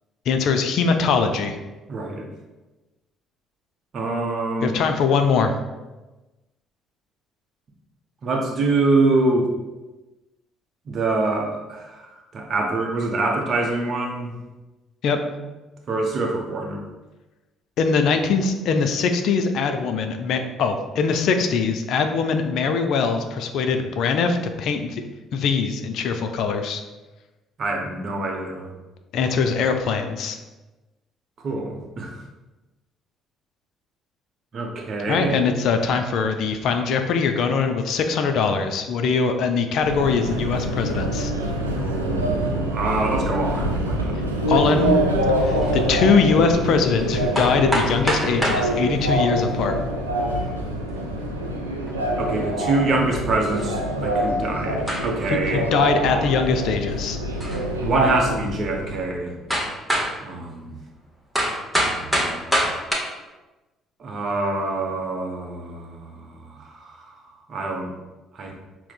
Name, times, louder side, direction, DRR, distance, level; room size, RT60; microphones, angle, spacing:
voice 1, 0.3-1.6 4.6-5.5 15.0-15.2 17.8-25.0 25.3-26.8 29.1-30.4 35.1-41.3 44.5-44.9 45.4-49.8 55.3-57.2, left 5 dB, 60° left, 6 dB, 0.3 m, -22 dB
voice 2, 1.9-2.3 3.9-4.8 8.2-9.5 10.9-14.4 15.9-16.8 27.6-28.7 31.4-32.1 34.5-35.4 41.7-44.3 52.2-55.7 57.8-59.4 60.2-60.8 61.7-62.7 64.0-67.1 67.5-67.9 68.3-68.5, right 2 dB, 45° right, 1 dB, 0.7 m, -25 dB
Subway metro underground, 39.8-59.1, right 1 dB, 90° right, 0.3 m, -25 dB
sound 1, 45.6-45.7 47.0-47.1 47.3-48.7 50.0-50.4 51.9-52.0 52.2-52.3 53.5-53.8 54.2-54.3 54.9-55.3 57.4-57.7 58.3-58.4 59.5-60.2 61.3-62.9, equal, ahead, 0.8 m, -24 dB
5.6 x 2.0 x 2.3 m, 1.1 s
figure-of-eight pair, 50°, 0 cm